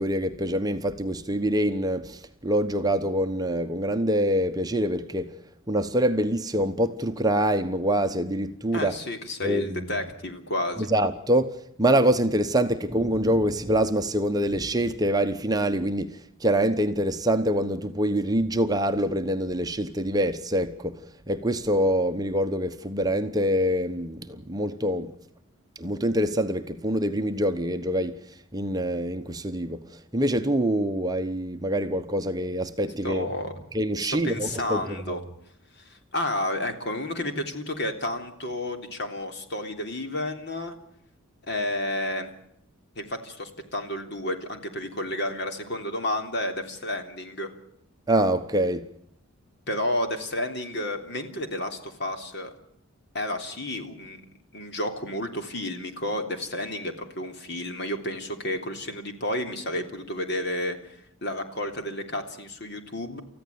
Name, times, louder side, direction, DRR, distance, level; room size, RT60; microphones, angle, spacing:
voice 1, 0.0-5.3 5.7-9.0 9.4-9.9 10.9-21.0 21.3-25.1 25.8-28.2 28.5-33.3 33.7-35.2 48.1-48.9, right 1 dB, 15° right, 1.0 m, -25 dB
voice 2, 8.7-10.9 33.0-33.5 34.0-35.2 35.8-40.8 41.4-42.3 42.9-47.5 49.7-52.5 53.1-54.2 54.5-63.2, left 1 dB, 50° left, 3.4 m, -31 dB
29.5 x 15.0 x 8.6 m
head